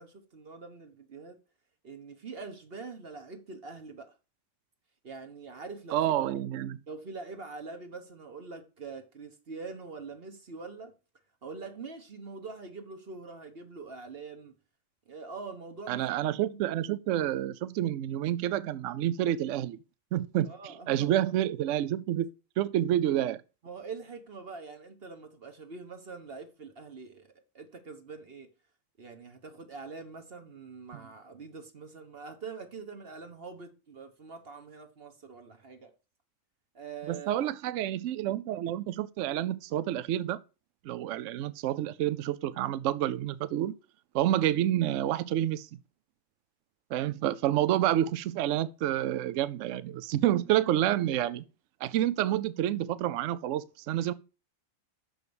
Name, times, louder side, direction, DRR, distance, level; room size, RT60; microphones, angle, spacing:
voice 1, 0.0-1.4 1.8-4.1 5.0-6.0 6.3-6.5 6.9-10.9 11.4-14.6 15.1-16.6 20.4-21.1 23.6-28.5 29.0-35.9 36.7-37.5, right 4 dB, 50° right, 1.2 m, -44 dB
voice 2, 5.9-6.8 15.9-19.8 20.1-20.5 20.9-22.3 22.6-23.4 37.1-40.4 40.8-43.8 44.1-45.7 46.9-51.4 51.8-54.1, right 12 dB, 70° right, 0.9 m, -28 dB
6.4 x 5.1 x 6.9 m
omnidirectional pair, 1.4 m